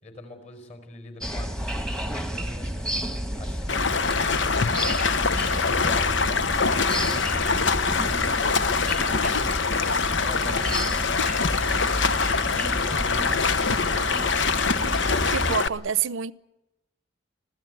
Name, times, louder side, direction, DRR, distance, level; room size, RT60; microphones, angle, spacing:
voice 1, 0.0-3.1 3.4-5.0 5.6-6.4 6.7-8.5 10.2-11.1 12.3-13.8, left 2 dB, 35° left, 5.0 m, -43 dB
sound 1, 1.2-15.6, equal, 5° left, 1.4 m, -31 dB
Stream, 3.7-15.7, left 5 dB, 70° left, 1.0 m, -24 dB
Female speech woman speaking, 4.9-10.7, left 3 dB, 50° left, 3.7 m, -49 dB
voice 2, 15.2-16.3, right 7 dB, 85° right, 0.8 m, -27 dB
25.5 x 16.0 x 9.3 m
head